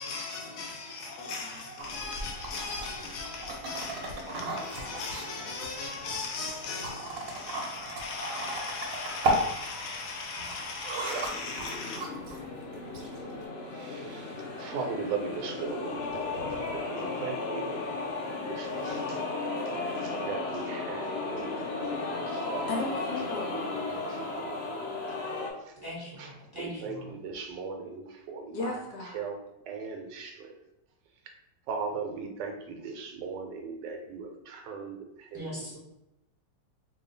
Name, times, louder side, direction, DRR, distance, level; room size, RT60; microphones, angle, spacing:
voice 1, 0.0-12.0 22.7-23.7 28.5-29.3, left 3 dB, 75° left, 1.0 m, -37 dB
sound 1, 1.8-13.4, right 1 dB, 60° right, 1.0 m, -36 dB
sound 2, 11.2-25.5, left 3 dB, 55° left, 0.7 m, -35 dB
voice 2, 13.7-14.3 14.6-16.1 16.4-17.9 18.5-19.2 20.0-22.7 23.5-24.9 26.2-26.3 26.6-28.7 29.1-29.4 29.7-30.6 31.7-35.4, right 5 dB, 80° right, 1.2 m, -38 dB
voice 3, 25.8-27.1 35.3-35.8, equal, 25° right, 0.5 m, -41 dB
2.7 x 2.3 x 3.8 m
omnidirectional pair, 1.9 m